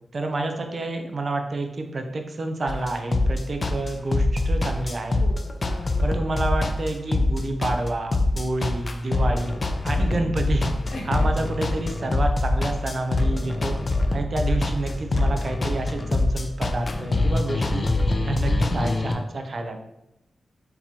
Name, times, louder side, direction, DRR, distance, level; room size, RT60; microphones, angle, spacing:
voice 1, 0.1-5.2 6.0-9.5 9.8-10.7 11.1-13.8 14.1-17.8 18.2-19.8, right 2 dB, 45° right, 5 dB, 0.5 m, -29 dB
sound 1, 2.7-19.1, left 2 dB, 35° left, 0.4 m, -24 dB
voice 2, 5.2-6.1 9.9-10.4 10.9-11.5, left 1 dB, 80° left, -2 dB, 1.2 m, -39 dB
4.3 x 3.8 x 2.9 m, 0.84 s
wide cardioid pair, 125°, 0 cm